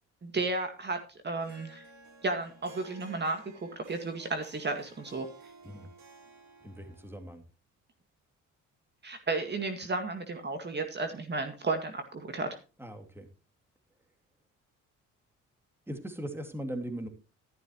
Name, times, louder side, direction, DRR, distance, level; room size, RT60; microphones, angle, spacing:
voice 1, 0.2-1.0 1.2-1.8 2.2-3.4 3.9-5.3 9.0-12.6, right 3 dB, 35° right, 6 dB, 2.0 m, -33 dB
Harp, 1.4-7.2, right 3 dB, 65° right, 3.5 m, -55 dB
voice 2, 6.6-7.4 12.8-13.3 15.9-17.1, right 1 dB, 10° right, 6 dB, 2.5 m, -39 dB
13.0 x 11.5 x 3.0 m, 0.31 s
cardioid pair, 90°, 30 cm